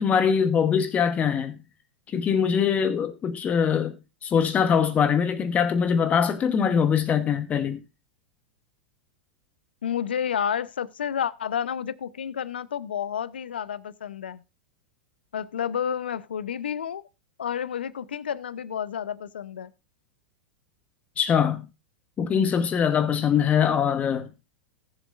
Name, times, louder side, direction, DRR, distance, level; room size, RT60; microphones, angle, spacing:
voice 1, 0.0-1.6 2.1-7.8 21.2-21.6 22.2-24.3, left 7 dB, 25° left, 1.1 m, -23 dB
voice 2, 9.8-14.4 15.3-17.0 17.4-19.7, left 8 dB, 80° left, 0.8 m, -30 dB
19.0 x 7.3 x 2.5 m
hypercardioid pair, 105°, 5 cm